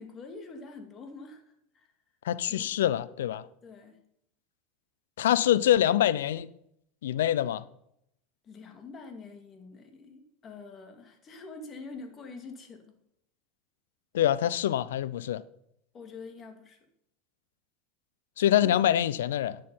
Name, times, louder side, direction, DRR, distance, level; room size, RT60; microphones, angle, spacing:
voice 1, 0.0-1.9 2.5-2.7 3.6-4.0 8.4-13.0 15.9-16.9, left 3 dB, 35° left, 2.4 m, -46 dB
voice 2, 2.2-3.4 5.2-6.5 7.0-7.6 14.1-15.4 18.4-19.6, left 11 dB, 85° left, 0.6 m, -25 dB
11.0 x 6.7 x 5.6 m
supercardioid pair, 105°, 0 cm